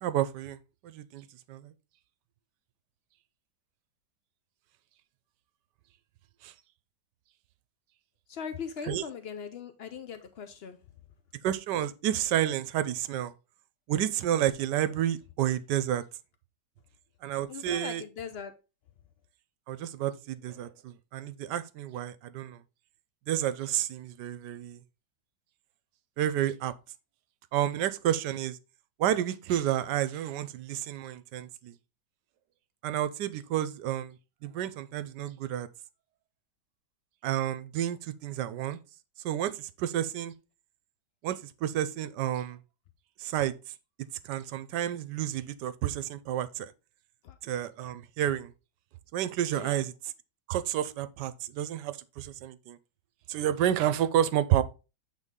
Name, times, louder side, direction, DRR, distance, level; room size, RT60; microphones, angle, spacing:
voice 1, 0.0-0.6 0.8-1.7 6.4-6.5 8.9-9.0 11.4-13.3 13.9-16.0 17.2-18.0 19.7-22.6 23.3-24.8 26.2-26.7 27.5-28.6 29.0-31.7 32.8-34.2 34.4-35.7 37.2-38.8 39.2-40.3 41.2-42.6 43.2-43.5 44.2-46.7 47.4-48.5 49.1-49.9 50.5-52.8 53.3-54.6, right 11 dB, 75° right, 1.2 m, -30 dB
voice 2, 8.3-10.8 17.5-18.5 47.2-47.4 49.5-49.9, left 7 dB, 90° left, 0.5 m, -40 dB
8.1 x 4.1 x 3.6 m
omnidirectional pair, 1.9 m